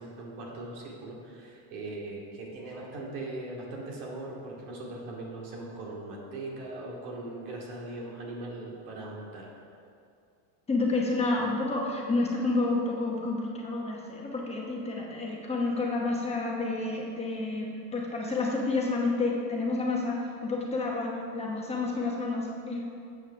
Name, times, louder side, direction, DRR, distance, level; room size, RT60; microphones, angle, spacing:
voice 1, 0.0-9.5, right 2 dB, 85° right, -3 dB, 2.4 m, -40 dB
voice 2, 10.7-22.8, left 3 dB, 15° left, -2 dB, 1.0 m, -29 dB
7.7 x 5.6 x 6.8 m, 2.5 s
cardioid pair, 155°, 41 cm